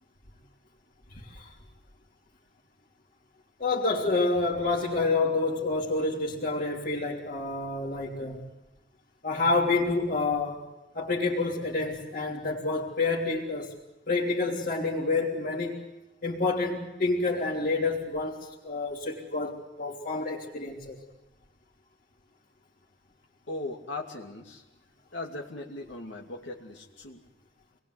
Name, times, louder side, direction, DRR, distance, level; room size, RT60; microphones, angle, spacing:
voice 1, 1.1-1.5 3.6-8.4 9.2-10.7 10.9-13.8 14.1-15.8 16.2-21.0, left 3 dB, 50° left, -4 dB, 3.3 m, -28 dB
voice 2, 23.5-24.6 25.1-27.2, left 2 dB, 85° left, 0 dB, 2.8 m, -38 dB
27.5 x 21.0 x 8.1 m, 1.0 s
head